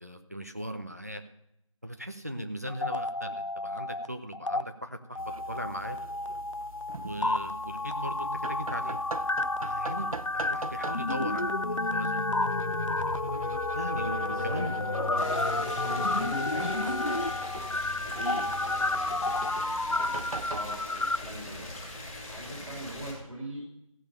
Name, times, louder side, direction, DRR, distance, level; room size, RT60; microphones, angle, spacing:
voice 1, 0.0-1.2 1.8-6.0 7.0-9.0 9.6-10.1 10.3-12.3 13.7-14.7, equal, 30° right, 6 dB, 0.8 m, -38 dB
sound 1, 2.7-4.1 4.3-4.6 5.1-21.2, left 2 dB, 65° left, 0.6 m, -31 dB
sound 2, 5.2-20.7, right 4 dB, 85° right, 0.4 m, -43 dB
voice 2, 14.0-17.5 18.0-19.2 19.9-21.7 22.3-23.6, right 1 dB, 55° right, -8 dB, 5.3 m, -42 dB
sound 3, 15.1-23.1, left 2 dB, 5° right, 3.9 m, -42 dB
16.0 x 5.3 x 6.8 m, 0.79 s
figure-of-eight pair, 170°, 17 cm